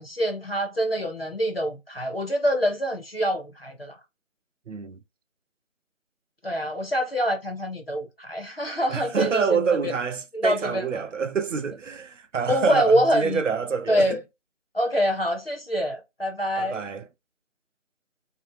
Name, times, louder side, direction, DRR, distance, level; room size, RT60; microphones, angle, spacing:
voice 1, 0.0-4.0 6.4-9.9 10.3-11.1 12.5-13.4 13.9-14.2 14.7-16.8, equal, 50° left, 0.5 m, -25 dB
voice 2, 4.7-5.0 8.9-14.2 16.6-17.0, right 5 dB, 70° right, 0.5 m, -27 dB
2.7 x 2.5 x 2.5 m
figure-of-eight pair, 165°, 38 cm